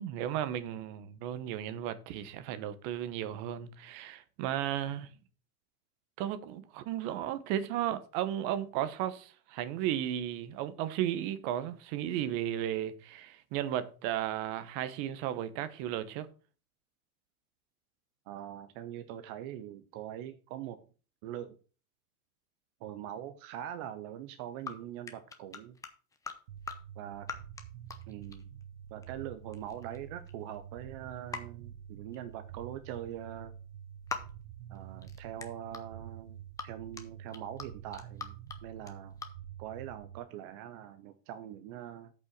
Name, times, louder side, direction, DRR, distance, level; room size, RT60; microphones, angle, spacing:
voice 1, 0.0-5.1 6.2-16.3, right 11 dB, 40° right, 1.0 m, -34 dB
voice 2, 18.3-20.8 21.2-21.6 22.8-25.8 27.0-27.3 28.1-28.5 28.9-33.5 34.7-39.1 39.6-42.1, right 11 dB, 25° right, 0.4 m, -43 dB
sound 1, 24.7-24.8 25.1-26.3 26.6-26.8 27.3-27.6 27.9-28.6 29.0-29.2 29.5-30.6 31.3-31.4 32.1-32.3 34.1-34.3 34.8-35.8 36.6-36.7 36.9-37.7 37.9-38.6 38.8-39.3, left 5 dB, 10° left, 0.7 m, -41 dB
sound 2, 26.5-40.2, right 9 dB, 80° right, 0.8 m, -48 dB
8.2 x 5.5 x 6.0 m
supercardioid pair, 145°, 43 cm